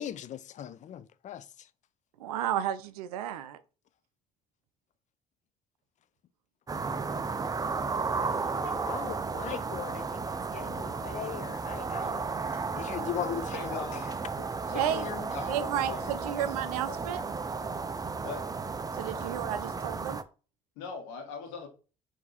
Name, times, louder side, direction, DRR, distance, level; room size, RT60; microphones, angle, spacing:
voice 1, 0.0-1.7 8.2-13.8 14.9-15.3 15.9-16.1, left 10 dB, 40° left, 0.4 m, -39 dB
voice 2, 2.2-3.6 14.7-15.0 15.5-17.2 18.9-20.2, right 10 dB, 85° right, 0.4 m, -32 dB
sound 1, 6.7-20.2, right 4 dB, 20° right, 0.5 m, -34 dB
voice 3, 13.5-14.1 14.4-15.0 15.3-16.0 16.4-16.5 16.9-17.0 18.2-18.6 20.8-21.7, left 5 dB, 75° left, 1.1 m, -40 dB
3.9 x 2.7 x 4.1 m
hypercardioid pair, 55°, 19 cm